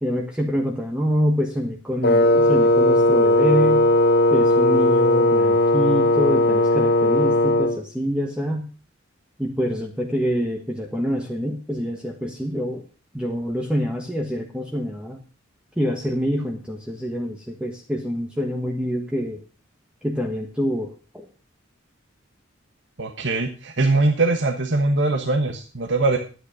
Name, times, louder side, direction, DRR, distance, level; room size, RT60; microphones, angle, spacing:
voice 1, 0.0-3.9 4.3-8.7 9.4-12.8 13.1-15.2 15.8-19.4 20.0-21.3, equal, 5° right, 1 dB, 1.3 m, -26 dB
Wind instrument woodwind instrument, 2.0-7.8, left 1 dB, 55° left, 1.0 m, -17 dB
voice 2, 23.0-26.2, right 2 dB, 65° right, 5 dB, 1.4 m, -21 dB
11.5 x 9.6 x 5.0 m, 0.36 s
head